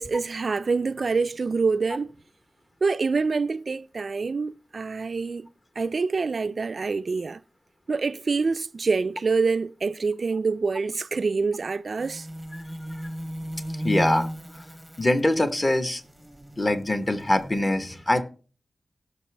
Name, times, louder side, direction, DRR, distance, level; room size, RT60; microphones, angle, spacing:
voice 1, 0.0-2.1 2.8-5.5 5.8-7.4 7.9-12.3, right 4 dB, 55° right, 0.4 m, -26 dB
sound 1, 12.0-17.6, right 1 dB, 5° right, 0.9 m, -35 dB
voice 2, 13.8-14.3 15.0-16.0 16.6-18.2, left 1 dB, 25° left, 1.0 m, -23 dB
17.5 x 6.0 x 3.3 m
wide cardioid pair, 125°, 0 cm